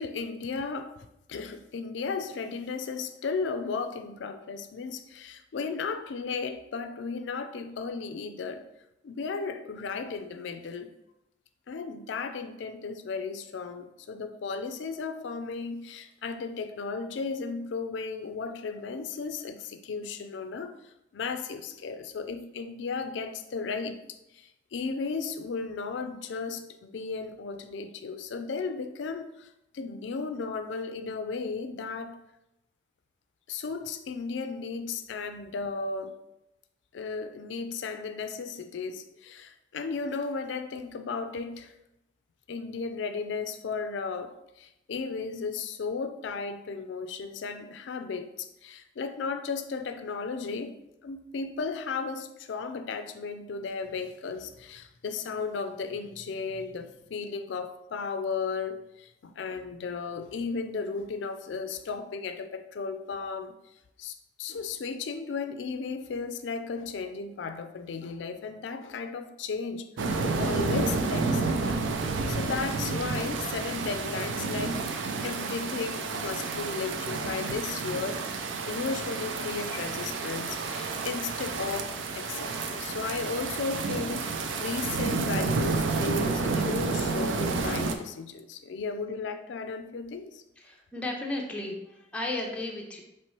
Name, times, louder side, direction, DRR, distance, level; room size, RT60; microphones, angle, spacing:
voice 1, 0.0-8.6 9.0-10.9 11.7-20.7 21.1-29.5 29.7-32.2 33.5-36.2 36.9-41.7 42.5-50.7 51.0-63.5 64.0-71.9 72.3-78.3 78.7-90.4, left 4 dB, 75° left, 9 dB, 0.4 m, -35 dB
sound 1, 70.0-87.9, right 4 dB, 90° right, 0.4 m, -30 dB
voice 2, 90.6-93.0, left 2 dB, 5° left, -1 dB, 0.6 m, -34 dB
4.4 x 3.1 x 3.0 m, 0.86 s
head